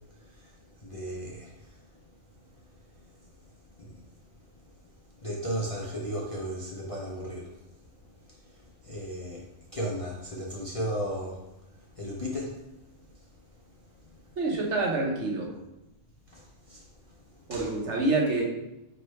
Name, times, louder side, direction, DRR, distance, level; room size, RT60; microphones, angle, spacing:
voice 1, 0.2-1.9 3.0-3.1 3.8-4.0 4.3-4.9 5.2-7.6 8.3-12.6 14.0-14.1 16.3-17.7, equal, 40° left, -4 dB, 0.5 m, -36 dB
voice 2, 14.4-15.5 17.5-18.4, right 2 dB, 70° right, -2 dB, 1.3 m, -27 dB
5.3 x 3.2 x 3.1 m, 0.92 s
omnidirectional pair, 1.3 m